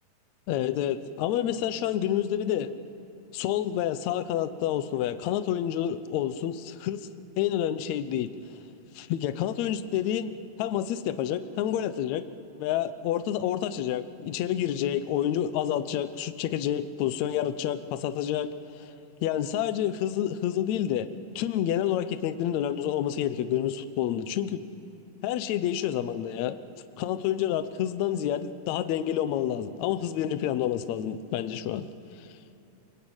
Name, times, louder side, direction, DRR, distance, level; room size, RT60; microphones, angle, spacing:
voice 1, 0.5-2.7 3.3-7.1 7.4-8.3 8.9-10.3 10.6-12.2 12.6-18.5 18.8-18.9 19.2-21.1 21.4-24.6 25.2-26.6 27.0-31.9, left 11 dB, 70° left, 12 dB, 1.9 m, -28 dB
30.0 x 22.5 x 8.9 m, 2.8 s
omnidirectional pair, 4.0 m